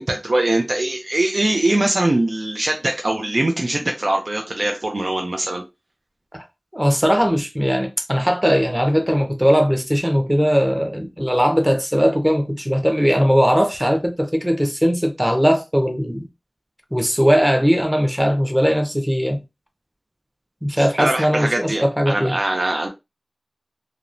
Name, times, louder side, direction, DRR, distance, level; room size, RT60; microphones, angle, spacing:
voice 1, 0.0-5.6 20.8-22.9, right 1 dB, 80° right, 0.4 m, -22 dB
voice 2, 6.7-16.3 16.9-19.4 20.6-22.3, equal, 10° right, 0.7 m, -19 dB
2.9 x 2.1 x 2.5 m
wide cardioid pair, 40°, 0 cm